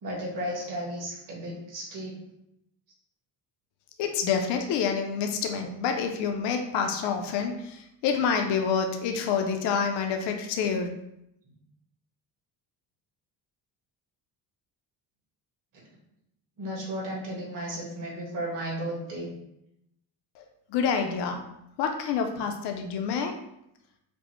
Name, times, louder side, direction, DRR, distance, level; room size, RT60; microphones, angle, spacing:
voice 1, 0.0-2.1 16.6-19.3, right 1 dB, 50° right, -3 dB, 1.5 m, -34 dB
voice 2, 4.0-10.9 20.4-20.5 20.7-21.4 21.8-23.3, left 6 dB, 80° left, 4 dB, 0.6 m, -27 dB
5.2 x 2.1 x 3.0 m, 0.80 s
cardioid pair, 160°, 41 cm